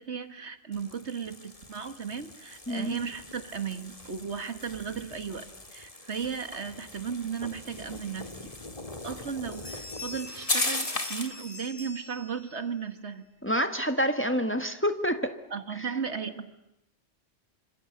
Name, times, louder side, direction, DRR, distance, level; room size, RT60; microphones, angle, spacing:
voice 1, 0.0-8.5 9.0-13.3 15.5-16.5, right 6 dB, 75° right, 10 dB, 2.0 m, -35 dB
sound 1, 0.7-11.4, left 2 dB, 30° left, 2.2 m, -38 dB
voice 2, 2.7-3.0 13.4-15.3, equal, 10° left, 8 dB, 1.6 m, -27 dB
Bell, 9.5-12.7, left 3 dB, 65° left, 3.2 m, -44 dB
27.0 x 26.0 x 8.0 m, 0.86 s
omnidirectional pair, 1.1 m